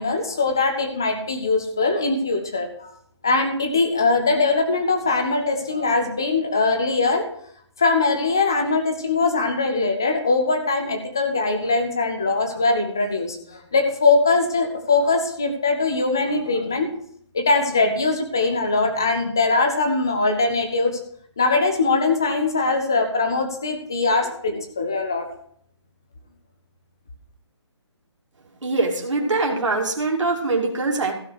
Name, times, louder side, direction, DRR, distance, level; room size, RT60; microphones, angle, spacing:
voice 1, 0.0-2.9 3.2-7.3 7.8-16.9 17.3-21.0 21.4-25.3, left 3 dB, 10° left, 5 dB, 0.4 m, -21 dB
voice 2, 28.6-31.1, right 3 dB, 90° right, 0 dB, 2.6 m, -23 dB
15.5 x 5.2 x 6.3 m, 0.64 s
hypercardioid pair, 175°, 15 cm